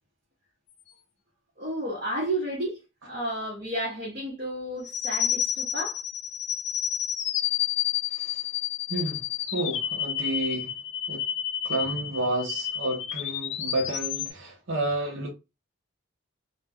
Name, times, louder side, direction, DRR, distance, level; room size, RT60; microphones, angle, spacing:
voice 1, 1.6-6.0, right 1 dB, 40° right, 0.9 m, -32 dB
sound 1, 4.9-14.3, left 10 dB, 55° left, 0.3 m, -30 dB
voice 2, 8.1-8.4 8.9-9.2 9.5-10.7 11.1-11.2 11.6-15.3, right 2 dB, 75° right, 0.7 m, -30 dB
2.3 x 2.1 x 3.4 m
head